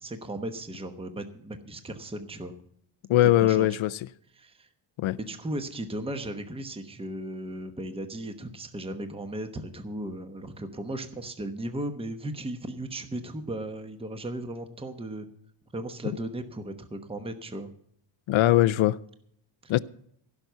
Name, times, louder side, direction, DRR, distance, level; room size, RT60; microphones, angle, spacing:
voice 1, 0.0-2.5 3.3-3.8 4.4-4.7 5.1-15.3 15.7-17.7 19.6-19.7, right 1 dB, 10° right, 1.0 m, -36 dB
voice 2, 3.1-4.0 5.0-5.2 18.3-19.0 19.7-19.8, left 14 dB, 80° left, 0.6 m, -21 dB
16.5 x 6.0 x 8.1 m
wide cardioid pair, 150°, 47 cm